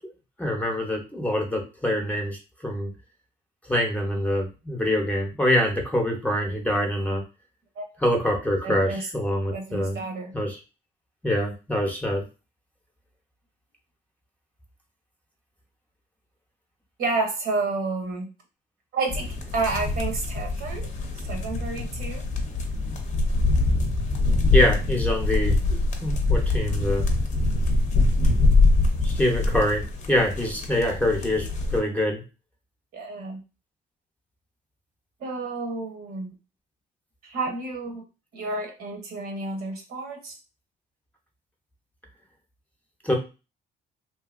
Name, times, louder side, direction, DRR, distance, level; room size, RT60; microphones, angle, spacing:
voice 1, 0.4-2.9 3.7-7.2 8.0-10.0 10.3-10.6 11.2-12.2 24.5-27.0 29.0-32.2 43.0-43.1, left 1 dB, 10° left, 0 dB, 0.8 m, -25 dB
voice 2, 8.6-9.1 9.5-10.3 17.0-18.3 18.9-20.9 21.2-22.2 25.6-25.7 25.9-26.1 26.9-27.5 32.9-33.4 35.2-36.3 37.2-38.0 38.3-40.4, right 3 dB, 65° right, 3 dB, 1.0 m, -30 dB
sound 1, 19.1-31.8, left 3 dB, 45° left, 0.7 m, -24 dB
2.8 x 2.6 x 2.4 m, 0.30 s
cardioid pair, 110°, 17 cm